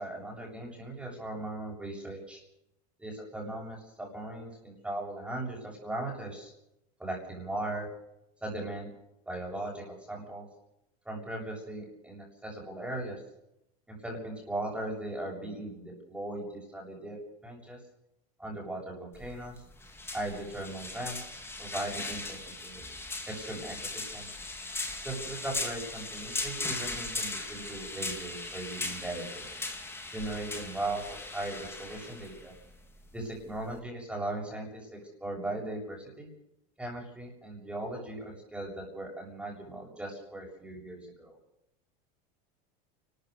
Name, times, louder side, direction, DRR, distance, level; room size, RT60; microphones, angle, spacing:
voice 1, 0.0-2.4 3.0-6.5 7.0-7.9 8.4-8.9 9.3-10.5 11.1-13.2 13.9-17.2 17.4-17.8 18.4-19.6 20.1-21.3 21.6-22.8 23.3-24.3 25.0-29.6 30.1-31.0 31.3-32.5 33.1-36.3 36.8-41.3, right 1 dB, 5° right, -2 dB, 7.3 m, -38 dB
sound 1, 19.1-33.8, left 2 dB, 10° left, 3.2 m, -39 dB
29.5 x 14.0 x 6.7 m, 0.83 s
supercardioid pair, 130°, 20 cm